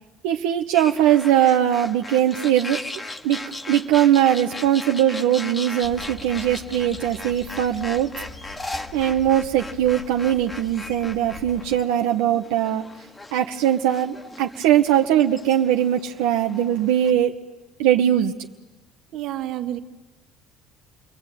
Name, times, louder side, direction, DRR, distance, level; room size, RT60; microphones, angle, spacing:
voice 1, 0.2-2.8 3.2-8.1 8.9-12.8 13.3-17.3 17.8-18.3, right 11 dB, 90° right, 3 dB, 1.2 m, -20 dB
sound 1, 0.7-17.1, left 2 dB, 15° left, 1.7 m, -38 dB
sound 2, 5.8-11.8, left 4 dB, 80° left, 5.2 m, -43 dB
voice 2, 19.1-19.8, right 13 dB, 65° right, 7 dB, 1.9 m, -30 dB
29.5 x 21.5 x 9.2 m, 1.1 s
cardioid pair, 105°, 0 cm